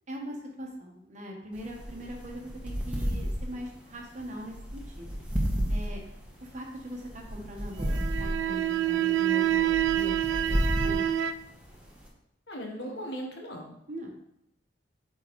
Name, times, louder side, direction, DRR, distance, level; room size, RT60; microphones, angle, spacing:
voice 1, 0.1-5.2 5.7-6.0 6.4-10.1 10.5-11.0 13.9-14.1, equal, 40° right, 1 dB, 1.1 m, -41 dB
sound 1, 1.5-12.1, equal, 5° right, 1.1 m, -33 dB
sound 2, 7.8-11.3, right 12 dB, 85° right, 0.3 m, -27 dB
voice 2, 12.5-13.7, equal, 70° left, 1 dB, 1.2 m, -38 dB
8.2 x 3.8 x 3.1 m, 0.79 s
head